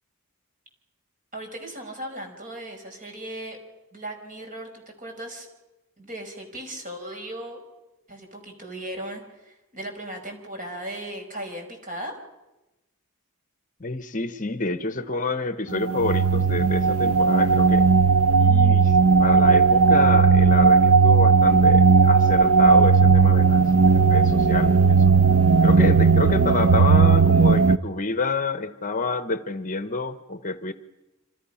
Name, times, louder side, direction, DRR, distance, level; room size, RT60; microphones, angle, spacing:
voice 1, 1.3-3.6 3.9-5.5 6.0-7.6 8.1-12.1, right 1 dB, 40° right, 3 dB, 5.2 m, -37 dB
voice 2, 13.8-17.9 18.4-25.1 25.6-30.7, left 3 dB, 35° left, 11 dB, 1.0 m, -28 dB
sound 1, 15.7-27.8, right 5 dB, 75° right, 0.7 m, -16 dB
28.5 x 26.5 x 5.7 m, 1.0 s
head